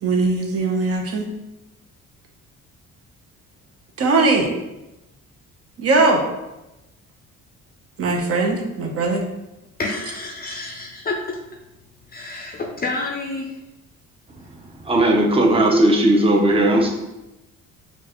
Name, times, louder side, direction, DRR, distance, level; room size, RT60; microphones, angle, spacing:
voice 1, 0.0-1.3 4.0-4.5 5.8-6.2 8.0-9.2, right 3 dB, 50° right, 0.9 m, -20 dB
voice 2, 9.8-11.4 12.1-13.6, left 3 dB, 30° left, 0.5 m, -29 dB
voice 3, 14.9-16.9, right 1 dB, 20° right, 0.7 m, -16 dB
4.4 x 2.5 x 3.0 m
cardioid pair, 90°, 30 cm